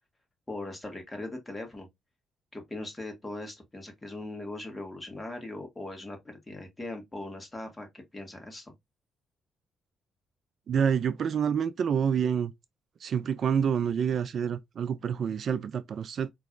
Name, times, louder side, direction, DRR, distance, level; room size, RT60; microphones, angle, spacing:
voice 1, 0.5-1.9 2.5-8.7, left 2 dB, 15° left, 1.8 m, -40 dB
voice 2, 10.7-12.5 13.0-16.3, right 7 dB, 60° right, 0.3 m, -27 dB
4.7 x 3.0 x 2.5 m
cardioid pair, 90°, 0 cm